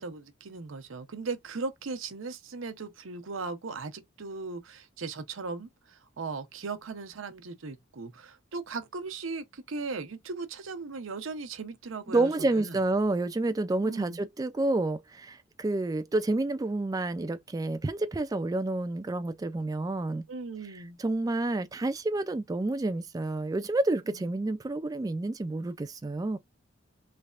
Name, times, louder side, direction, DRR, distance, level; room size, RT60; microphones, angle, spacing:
voice 1, 0.0-12.8 13.8-14.2 20.3-21.0 24.1-24.3, right 4 dB, 85° right, 0.7 m, -38 dB
voice 2, 12.1-20.2 20.6-26.4, right 2 dB, 20° right, 0.3 m, -29 dB
3.3 x 3.2 x 2.4 m
head